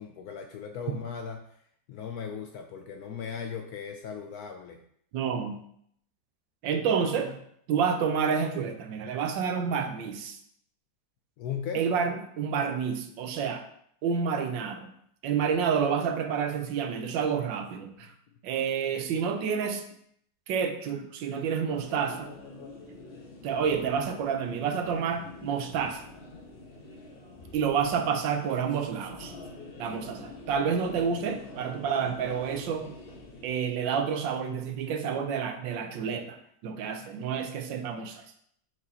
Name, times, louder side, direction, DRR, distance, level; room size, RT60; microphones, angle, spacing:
voice 1, 0.0-1.4 1.9-4.8 11.4-11.8, left 7 dB, 70° left, 4 dB, 0.9 m, -37 dB
voice 2, 5.1-5.6 6.6-7.4 7.7-10.4 11.7-13.6 14.0-14.9 15.2-18.1 18.4-19.8 20.5-22.3 23.4-26.0 27.5-29.3 29.8-32.9 33.4-36.4 36.6-38.2, right 6 dB, 80° right, 6 dB, 1.4 m, -29 dB
sound 1, 21.7-33.5, left 2 dB, 40° left, 0.9 m, -46 dB
7.2 x 4.9 x 2.8 m, 0.68 s
omnidirectional pair, 2.0 m